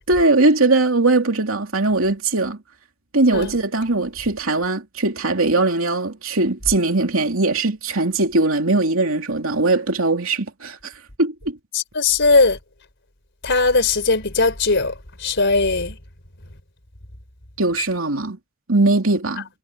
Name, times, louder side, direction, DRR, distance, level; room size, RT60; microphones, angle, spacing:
voice 1, 0.1-2.6 3.1-10.9 11.2-11.6 17.6-18.4 18.7-19.5, right 2 dB, 70° right, 3.1 m, -20 dB
voice 2, 11.7-12.6 13.4-14.9 15.2-16.0, left 3 dB, 60° left, 4.3 m, -18 dB
head